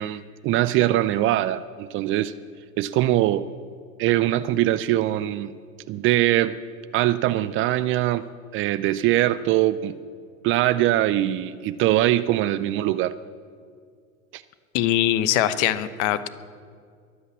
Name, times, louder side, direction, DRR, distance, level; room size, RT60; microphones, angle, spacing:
voice 1, 0.0-2.3 2.8-3.4 4.0-5.6 5.9-6.6 6.9-8.3 8.5-10.0 10.4-13.2 14.3-14.4, right 14 dB, 30° right, 15 dB, 0.4 m, -22 dB
voice 2, 14.7-16.3, left 12 dB, 55° left, 14 dB, 1.0 m, -22 dB
22.5 x 8.2 x 7.1 m, 2.2 s
figure-of-eight pair, 80°, 43 cm